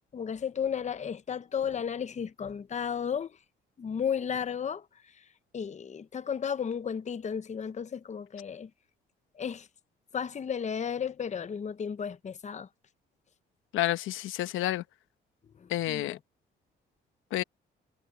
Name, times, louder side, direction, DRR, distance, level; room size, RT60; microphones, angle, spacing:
voice 1, 0.1-3.4 3.8-5.3 5.5-8.7 9.3-9.7 10.1-12.7 15.5-16.1, left 7 dB, 35° left, 0.8 m, -34 dB
voice 2, 13.7-14.8 15.7-16.2 17.3-17.4, left 14 dB, 90° left, 1.0 m, -29 dB
cardioid pair, 90°, 20 cm